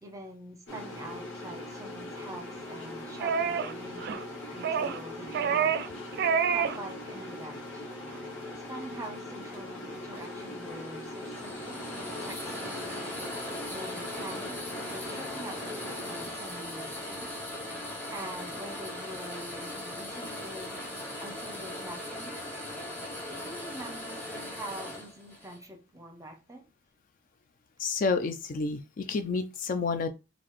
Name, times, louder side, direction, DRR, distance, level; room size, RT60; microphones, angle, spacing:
voice 1, 0.0-5.8 6.5-7.9 8.5-13.1 13.7-17.3 18.1-22.4 23.3-26.7, right 1 dB, 15° right, 0.8 m, -45 dB
sound 1, 0.7-16.3, left 1 dB, 75° left, 1.2 m, -41 dB
sound 2, 3.2-3.7 4.0-4.2 4.6-5.0 5.3-5.9 6.2-6.8 7.1-7.2, right 7 dB, 55° right, 0.3 m, -27 dB
sound 3, 10.1-25.7, left 1 dB, 10° left, 1.3 m, -39 dB
voice 2, 27.8-30.1, left 4 dB, 45° left, 0.4 m, -29 dB
3.8 x 2.4 x 3.2 m
head